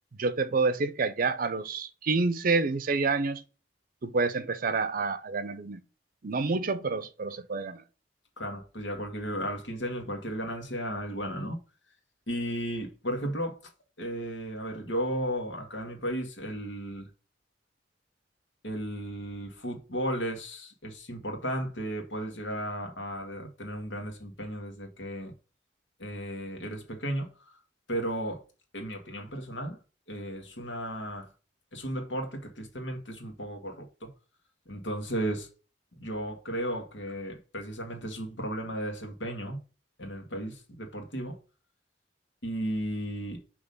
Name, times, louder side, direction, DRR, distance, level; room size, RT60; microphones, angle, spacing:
voice 1, 0.2-3.4 4.0-5.8 6.2-7.8, right 4 dB, 50° right, 0.5 m, -28 dB
voice 2, 8.4-11.6 12.3-13.6 14.0-17.1 18.6-25.3 26.0-27.5 27.9-28.4 28.7-29.8 30.1-31.3 31.7-34.1 34.7-35.5 36.0-39.6 40.0-41.4 42.4-43.4, equal, 80° left, 1.7 m, -34 dB
6.1 x 3.1 x 5.2 m
head